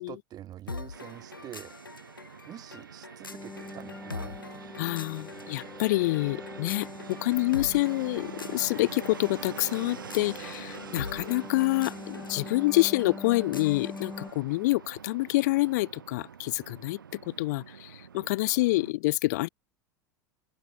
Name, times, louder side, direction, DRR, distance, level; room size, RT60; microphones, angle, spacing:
voice 1, 0.0-1.7 2.5-4.4, right 12 dB, 35° right, 1.8 m, -45 dB
sound 1, 0.7-14.4, left 4 dB, 80° left, 2.6 m, -44 dB
Fixed-wing aircraft airplane, 0.9-18.9, right 7 dB, 75° right, 1.4 m, -46 dB
sound 2, 3.3-14.3, left 3 dB, 10° left, 5.4 m, -44 dB
voice 2, 4.8-19.5, left 20 dB, 55° left, 0.4 m, -27 dB
open air
figure-of-eight pair, 80°, 11 cm